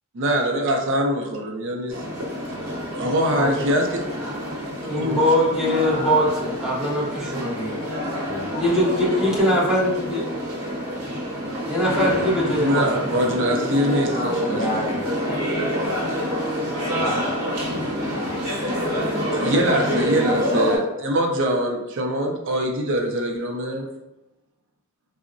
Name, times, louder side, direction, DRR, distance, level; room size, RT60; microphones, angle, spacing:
voice 1, 0.1-2.2 2.9-4.0 5.0-5.2 12.6-14.8 19.3-23.8, equal, 60° right, 2 dB, 0.5 m, -23 dB
sound 1, 1.9-20.8, equal, 90° right, 0.8 m, -27 dB
voice 2, 4.9-7.8 8.6-10.2 11.7-13.3, equal, 5° right, -6 dB, 0.8 m, -22 dB
voice 3, 5.9-6.3 8.0-9.3 13.2-16.4 16.7-17.4 17.9-19.6 20.1-20.4, left 1 dB, 35° left, -2 dB, 0.5 m, -34 dB
3.6 x 2.0 x 2.5 m, 0.96 s
head